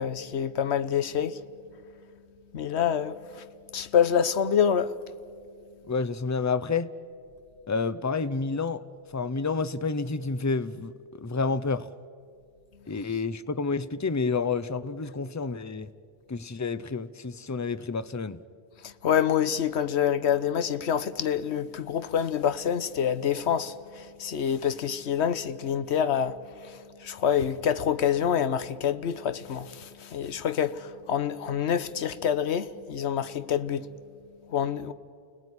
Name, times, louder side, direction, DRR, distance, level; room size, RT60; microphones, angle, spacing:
voice 1, 0.0-1.4 2.5-3.5 3.7-5.0 18.8-33.9 34.5-34.9, left 8 dB, 90° left, 1.2 m, -27 dB
voice 2, 5.9-6.9 7.7-8.8 9.1-11.9 12.9-15.9 16.3-18.4, left 4 dB, 20° left, 0.5 m, -29 dB
29.5 x 19.0 x 9.7 m
omnidirectional pair, 1.1 m